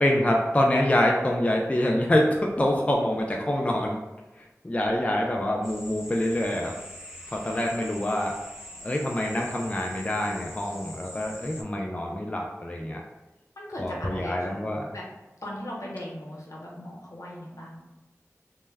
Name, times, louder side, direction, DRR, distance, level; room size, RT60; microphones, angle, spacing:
voice 1, 0.0-4.0 4.6-6.7 7.3-8.4 8.8-13.0 13.8-14.9, left 1 dB, 25° left, 0 dB, 0.3 m, -25 dB
sound 1, 5.6-11.6, equal, 10° right, 0.6 m, -44 dB
voice 2, 13.6-14.6 14.9-15.0 15.4-17.8, left 1 dB, 75° left, -4 dB, 0.7 m, -38 dB
2.2 x 2.1 x 3.3 m, 1.1 s
wide cardioid pair, 45°, 5 cm